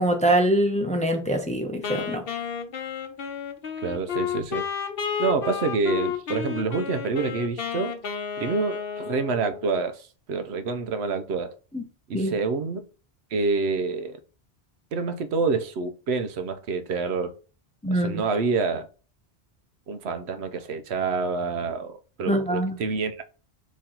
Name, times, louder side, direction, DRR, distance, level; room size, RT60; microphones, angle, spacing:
voice 1, 0.0-2.2 11.7-11.8 12.1-12.3 17.8-18.2 22.3-22.8, right 1 dB, 10° left, 0.5 m, -24 dB
Wind instrument woodwind instrument, 1.8-9.7, left 8 dB, 65° left, 0.9 m, -31 dB
voice 2, 3.8-4.7 5.2-8.0 8.4-11.5 12.1-12.8 13.3-14.2 14.9-17.3 17.9-18.9 19.9-23.2, right 4 dB, 90° right, 1.0 m, -27 dB
4.3 x 3.1 x 3.8 m
omnidirectional pair, 1.1 m